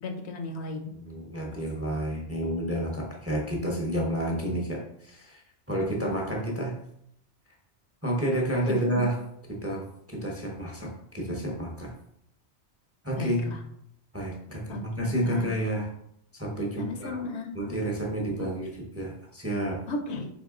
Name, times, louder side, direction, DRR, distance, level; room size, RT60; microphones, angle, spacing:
voice 1, 0.0-0.8 8.7-9.0 13.2-13.6 14.7-15.5 16.8-17.5 18.4-18.5 19.9-20.3, left 2 dB, 70° left, 5 dB, 0.9 m, -35 dB
voice 2, 0.9-5.4 5.7-6.8 8.0-9.2 9.5-11.9 13.0-13.5 14.1-15.9 16.3-17.2 17.5-19.8, right 1 dB, 15° right, 0 dB, 0.6 m, -30 dB
3.9 x 3.6 x 3.6 m, 0.72 s
omnidirectional pair, 1.2 m